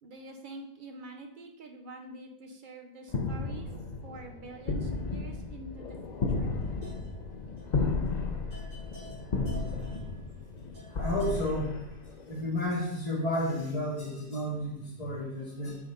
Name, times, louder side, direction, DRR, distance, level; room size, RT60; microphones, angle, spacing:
voice 1, 0.0-3.7 4.0-6.5, right 2 dB, 35° right, 4 dB, 0.9 m, -46 dB
sound 1, 3.1-12.4, left 3 dB, 40° left, 0.6 m, -34 dB
sound 2, 6.2-7.3 7.6-7.7 8.1-8.2 8.5-11.5, right 2 dB, 65° right, 4.0 m, -51 dB
voice 2, 11.0-11.8 12.3-15.8, left 1 dB, 20° left, -10 dB, 2.2 m, -31 dB
8.8 x 6.0 x 3.9 m, 0.80 s
omnidirectional pair, 1.8 m